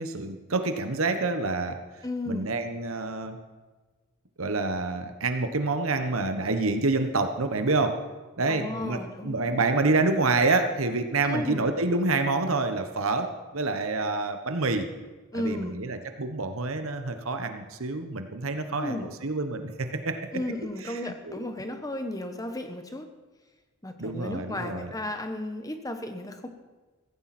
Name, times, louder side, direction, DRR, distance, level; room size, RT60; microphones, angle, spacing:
voice 1, 0.0-1.8 2.3-3.4 4.4-8.0 8.4-14.8 15.3-20.2 20.8-21.0 21.3-21.4 24.0-24.9, right 3 dB, 75° right, 7 dB, 1.3 m, -27 dB
voice 2, 2.0-2.6 8.5-9.6 11.3-11.7 15.3-15.8 18.8-19.1 20.3-23.1 23.8-26.5, left 1 dB, 15° left, 7 dB, 1.1 m, -34 dB
16.0 x 15.5 x 4.4 m, 1.3 s
head